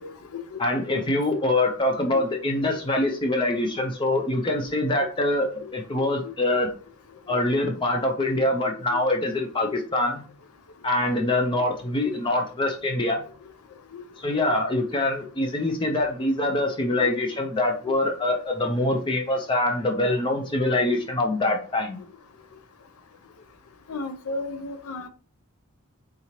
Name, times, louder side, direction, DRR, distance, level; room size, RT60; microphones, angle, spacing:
voice 1, 0.0-0.6 0.9-1.0 2.1-2.4 6.0-6.1 7.3-7.4 13.9-14.0 14.5-14.6 17.0-17.1 23.9-25.1, left 3 dB, 75° left, 0.5 m, -34 dB
voice 2, 0.6-6.7 7.3-10.2 10.8-13.2 14.2-22.0, left 2 dB, 20° left, 0.4 m, -24 dB
3.7 x 2.8 x 2.9 m
head